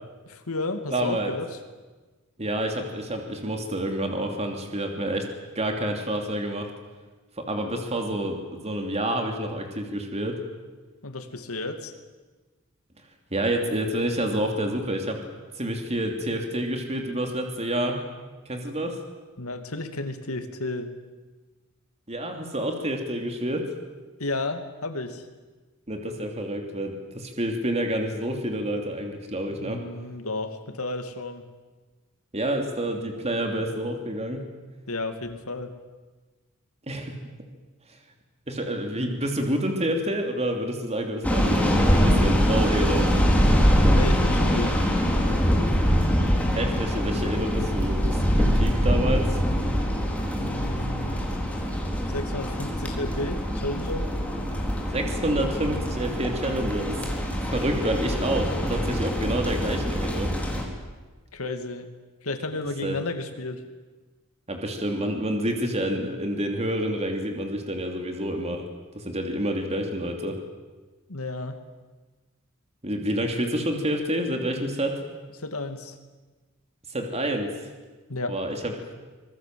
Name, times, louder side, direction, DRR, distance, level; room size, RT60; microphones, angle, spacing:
voice 1, 0.3-1.5 11.0-11.9 19.4-20.9 24.2-25.2 29.5-31.4 34.9-35.7 43.8-44.8 50.4-51.2 52.1-54.1 61.3-61.9 62.2-63.6 71.1-71.6 75.4-75.9 78.1-78.4, left 2 dB, 80° left, 7 dB, 2.6 m, -32 dB
voice 2, 0.9-1.3 2.4-5.2 5.5-6.7 7.5-10.4 13.3-15.2 15.6-18.0 18.5-18.9 22.1-23.7 25.9-29.8 32.3-34.4 36.9-37.1 38.5-43.1 46.5-49.4 54.9-57.0 57.5-60.3 62.8-63.0 64.5-68.6 68.9-70.4 72.8-75.0 76.9-77.5 78.3-78.7, right 1 dB, 30° right, 3 dB, 3.0 m, -28 dB
sound 1, 41.2-60.6, equal, 5° left, 4.1 m, -24 dB
25.5 x 22.0 x 7.8 m, 1.3 s
head